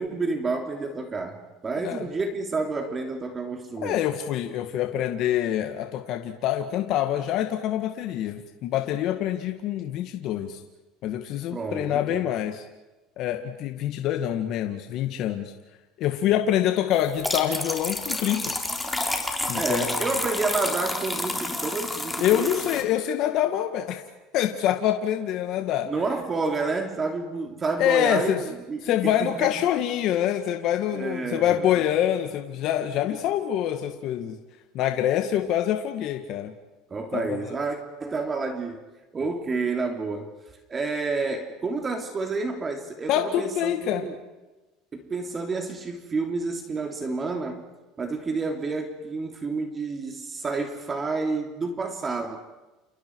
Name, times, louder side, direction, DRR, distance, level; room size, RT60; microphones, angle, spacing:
voice 1, 0.0-4.0 11.5-12.2 19.5-22.5 25.9-29.5 30.9-31.8 36.9-38.8 39.1-40.3 40.7-44.2 44.9-47.7 48.0-52.4, right 3 dB, 25° right, 4 dB, 3.2 m, -29 dB
voice 2, 3.8-10.6 11.0-12.6 13.2-15.5 16.0-18.5 19.5-20.0 22.2-24.0 24.3-25.9 27.8-28.4 28.8-34.3 34.7-36.5 37.1-37.5 43.1-44.0, left 11 dB, 60° left, 5 dB, 1.9 m, -25 dB
sound 1, 17.0-22.8, left 2 dB, 5° left, 3.5 m, -30 dB
29.5 x 29.0 x 4.8 m, 1.1 s
supercardioid pair, 115°, 0 cm